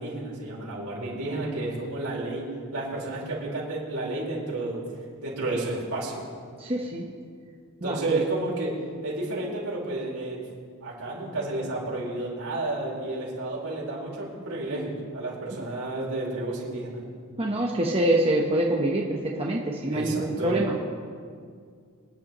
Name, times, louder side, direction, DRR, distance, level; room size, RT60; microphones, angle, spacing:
voice 1, 0.0-4.8 5.2-6.2 7.8-8.7 9.0-10.4 10.8-17.0 19.9-20.6, right 2 dB, 80° right, -5 dB, 4.4 m, -31 dB
voice 2, 6.6-7.1 7.8-8.2 15.5-15.6 17.4-20.8, right 1 dB, 25° right, -1 dB, 1.0 m, -25 dB
25.0 x 10.5 x 3.0 m, 2.1 s
head